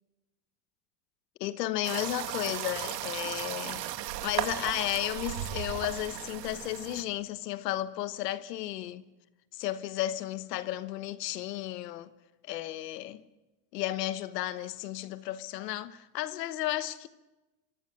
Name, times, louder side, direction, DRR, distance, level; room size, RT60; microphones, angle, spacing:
voice 1, 1.4-3.8 4.2-9.0 9.5-12.1 12.5-13.2 13.7-17.1, left 14 dB, 85° left, 1.3 m, -33 dB
sound 1, 1.8-7.0, right 12 dB, 90° right, 2.1 m, -36 dB
25.0 x 24.5 x 6.6 m
supercardioid pair, 95°, 47 cm